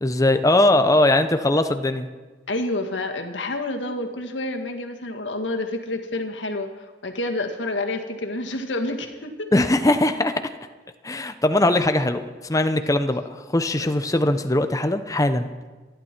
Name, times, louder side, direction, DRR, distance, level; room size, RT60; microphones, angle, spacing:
voice 1, 0.0-2.1 9.5-10.4 11.0-13.2 13.5-15.5, left 1 dB, 20° left, 9 dB, 0.8 m, -20 dB
voice 2, 2.5-9.5 13.8-13.9, left 2 dB, 90° left, 4 dB, 1.9 m, -29 dB
27.0 x 11.5 x 4.5 m, 1.3 s
head